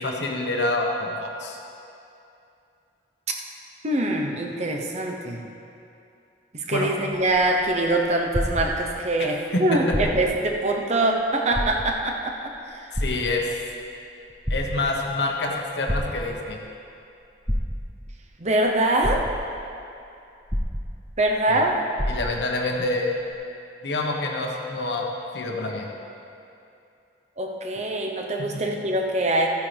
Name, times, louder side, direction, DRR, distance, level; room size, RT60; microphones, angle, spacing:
voice 1, 0.0-1.6 5.4-5.5 6.7-6.9 9.2-10.1 12.9-13.6 14.5-16.6 21.5-21.6 22.1-23.2 23.8-25.1 25.3-25.9 28.4-28.6, left 2 dB, 80° left, 0 dB, 1.4 m, -27 dB
voice 2, 3.8-5.4 6.5-12.9 18.4-19.2 21.2-21.8 27.4-29.5, right 1 dB, 40° right, 1 dB, 0.9 m, -24 dB
sound 1, 7.3-9.2 9.8-10.5 10.9-11.0 11.5-12.2 12.9-13.8 14.3-15.1 15.9-16.6 17.5-18.2 18.7-18.8 19.0-19.7 20.5-21.3 21.6-21.7 22.0-22.6 23.3-23.4, equal, ahead, 0.7 m, -28 dB
15.0 x 9.3 x 3.5 m, 2.6 s
head